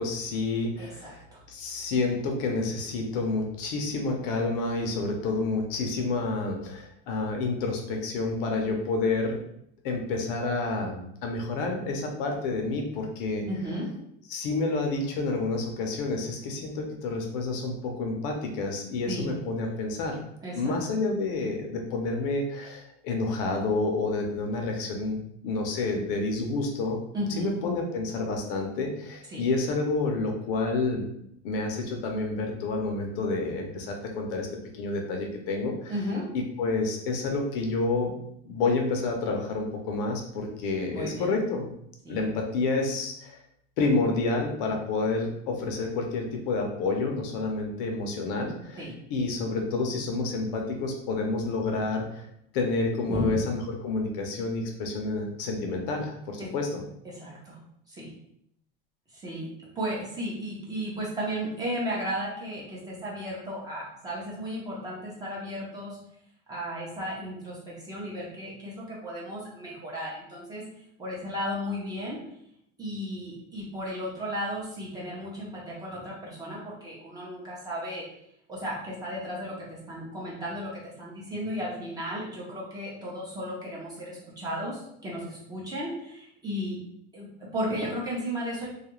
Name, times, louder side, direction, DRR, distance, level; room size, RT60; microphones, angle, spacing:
voice 1, 0.0-1.2 1.5-9.4 9.8-13.4 14.3-20.2 20.6-27.0 27.4-31.1 31.4-34.5 34.7-35.9 36.6-38.1 38.5-41.7 42.1-43.4 43.8-48.8 49.1-52.3 52.5-56.8, left 3 dB, 65° left, 2 dB, 0.6 m, -29 dB
voice 2, 0.8-1.4 13.5-13.9 19.1-19.3 20.4-20.7 27.1-27.5 29.3-29.4 35.9-36.3 40.9-41.3 42.0-42.2 48.8-48.9 53.1-53.4 56.4-56.5 57.0-57.6 57.9-58.1 59.1-59.5 59.8-66.0 66.5-70.6 71.0-72.2 72.8-78.0 78.5-86.8 87.1-88.7, equal, 15° right, -6 dB, 0.6 m, -34 dB
2.4 x 2.2 x 3.0 m, 0.73 s
supercardioid pair, 155°, 29 cm